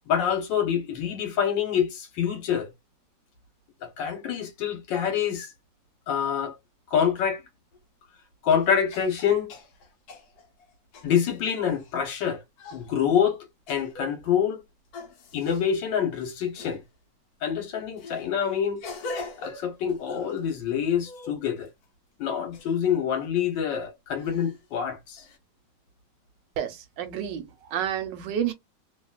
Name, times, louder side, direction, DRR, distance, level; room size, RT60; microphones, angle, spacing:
voice 1, 0.1-2.7 3.8-5.5 6.1-6.6 6.9-7.4 8.4-9.5 11.0-12.4 12.7-14.6 15.3-16.8 17.4-18.8 19.4-21.7 22.2-25.2, left 8 dB, 80° left, 1.5 m, -26 dB
sound 1, 7.7-7.8 8.5-11.9 12.6-13.0 13.7-14.3 14.9-15.6 16.5-16.8 18.0-20.6 21.0-21.8 22.5-23.1 24.2-24.7 25.2-25.4, left 3 dB, 65° left, 1.2 m, -42 dB
voice 2, 26.6-28.5, right 9 dB, 85° right, 1.3 m, -30 dB
2.9 x 2.8 x 2.2 m
omnidirectional pair, 2.0 m